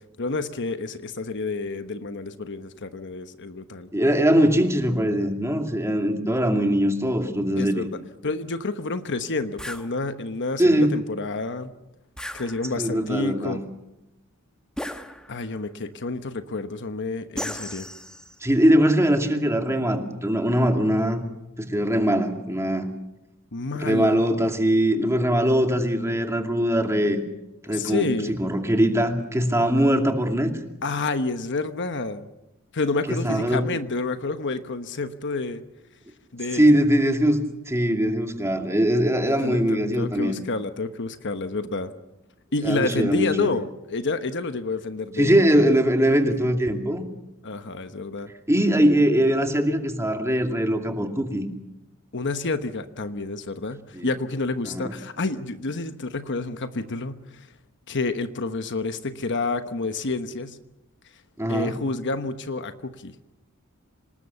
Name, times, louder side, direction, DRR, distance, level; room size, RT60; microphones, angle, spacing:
voice 1, 0.2-3.9 7.6-7.9 8.2-11.7 12.3-13.6 15.3-17.9 23.5-24.2 27.7-28.3 30.8-32.3 32.7-35.6 36.3-36.8 39.3-41.9 42.5-45.4 47.4-48.3 52.1-57.5 57.9-60.6 61.5-63.1, left 3 dB, 55° left, 9 dB, 1.2 m, -29 dB
voice 2, 3.9-7.9 10.6-11.0 12.8-13.6 18.4-21.2 21.6-22.9 23.8-27.2 27.6-28.1 28.4-30.5 33.1-33.7 36.5-40.3 42.6-43.5 45.2-47.0 48.5-51.4 53.9-54.1 54.7-54.9 61.4-61.8, equal, 15° right, 4 dB, 2.5 m, -21 dB
sound 1, 9.6-9.9 12.2-13.0 14.8-15.6 17.4-18.5, equal, 5° left, 1.2 m, -36 dB
26.0 x 20.0 x 6.9 m, 0.91 s
head